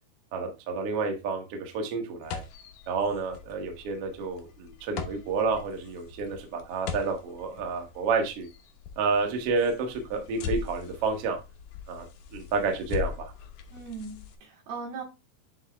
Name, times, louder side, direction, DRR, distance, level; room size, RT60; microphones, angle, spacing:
voice 1, 0.3-2.4 2.9-8.5 9.0-11.4 11.9-12.0 12.3-13.3, right 4 dB, 55° right, 3 dB, 1.7 m, -30 dB
sound 1, 2.2-14.4, left 6 dB, 70° left, 2.1 m, -41 dB
voice 2, 13.7-15.0, right 4 dB, 75° right, -1 dB, 4.3 m, -39 dB
9.7 x 3.6 x 3.5 m, 0.27 s
omnidirectional pair, 4.3 m